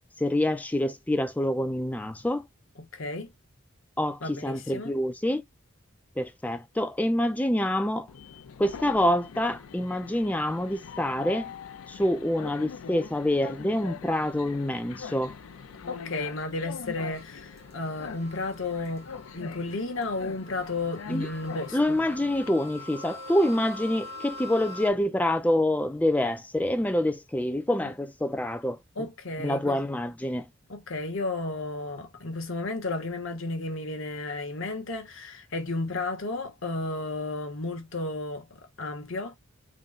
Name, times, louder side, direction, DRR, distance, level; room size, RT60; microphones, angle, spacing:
voice 1, 0.2-2.4 4.0-5.4 6.2-8.1 8.6-11.5 11.9-15.3 21.1-21.3 21.7-28.8 29.4-30.4, left 1 dB, 5° left, 0.3 m, -26 dB
voice 2, 2.8-3.3 4.2-4.9 15.9-22.0 27.8-27.9 29.0-29.8 30.7-39.4, left 2 dB, 65° left, 0.9 m, -33 dB
Train, 8.1-22.5, left 6 dB, 80° left, 0.4 m, -43 dB
sound 1, 15.2-24.9, left 2 dB, 30° right, 0.8 m, -45 dB
3.7 x 2.1 x 3.8 m
head